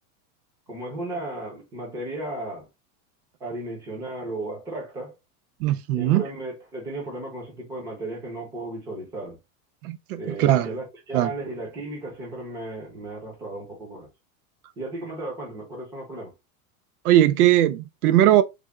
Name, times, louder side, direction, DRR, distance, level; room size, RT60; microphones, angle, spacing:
voice 1, 0.7-2.7 3.4-5.1 6.0-9.4 10.2-14.1 14.8-16.3, right 2 dB, 10° right, 0.5 m, -35 dB
voice 2, 5.6-6.2 9.8-10.7 11.1-11.3 17.0-18.4, right 13 dB, 85° right, 0.6 m, -19 dB
3.4 x 2.2 x 3.5 m
supercardioid pair, 180°, 44 cm